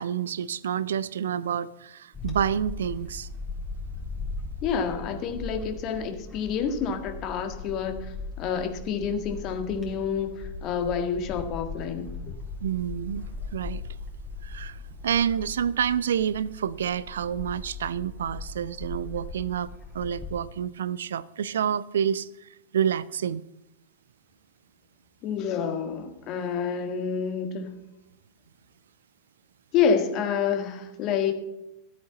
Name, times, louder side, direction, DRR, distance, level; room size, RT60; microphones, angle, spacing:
voice 1, 0.0-3.3 12.6-13.9 14.4-23.4, right 8 dB, 65° right, 0.4 m, -29 dB
Bird / Wind, 2.1-20.4, left 3 dB, 20° left, 3.6 m, -39 dB
voice 2, 4.6-12.1 25.2-27.7 29.7-31.3, left 6 dB, 40° left, 1.7 m, -28 dB
13.5 x 8.4 x 7.1 m
figure-of-eight pair, 90°, 0 cm